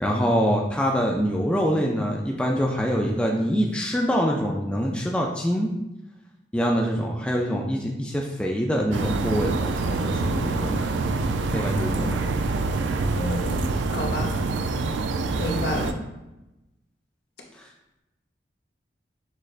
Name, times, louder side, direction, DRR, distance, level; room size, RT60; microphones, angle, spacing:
voice 1, 0.0-5.7 6.5-11.0 11.5-12.2 17.5-17.6, equal, 5° left, -1 dB, 0.3 m, -25 dB
sound 1, 8.9-15.9, right 3 dB, 90° right, 0.4 m, -26 dB
voice 2, 13.2-14.3 15.4-16.0, left 1 dB, 65° left, 0 dB, 0.8 m, -30 dB
6.3 x 3.2 x 2.4 m, 0.96 s
head